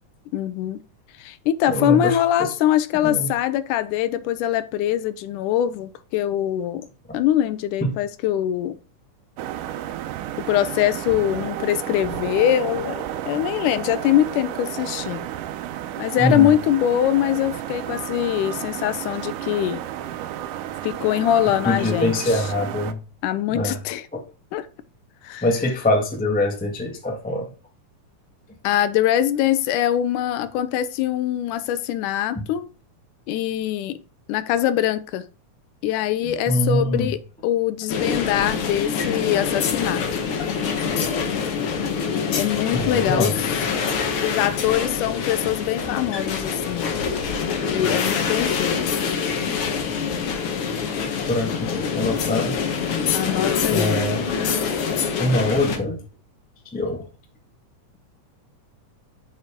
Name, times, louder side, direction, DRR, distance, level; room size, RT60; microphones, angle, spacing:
voice 1, 0.3-0.8 1.2-6.9 7.1-8.8 10.4-15.2 16.0-19.8 20.8-22.4 23.2-24.1 24.5-24.7 25.2-25.4 28.6-32.7 33.3-34.0 34.3-35.3 35.8-37.2 37.4-40.0 42.3-43.3 44.2-47.0 47.7-49.0 50.6-50.9 53.1-54.0, left 11 dB, 85° left, 2.1 m, -23 dB
voice 2, 1.7-2.5 3.0-3.3 7.8-7.9 16.1-16.5 21.6-23.0 23.5-23.8 25.4-27.5 32.3-32.4 36.2-37.1 42.7-43.4 51.3-52.6 53.7-54.2 55.2-56.0 56.7-57.0, left 1 dB, 10° left, 0.4 m, -23 dB
sound 1, 9.4-22.9, right 12 dB, 85° right, 2.3 m, -32 dB
sound 2, 37.9-55.8, left 6 dB, 60° left, 1.6 m, -25 dB
7.3 x 6.1 x 3.6 m
omnidirectional pair, 3.7 m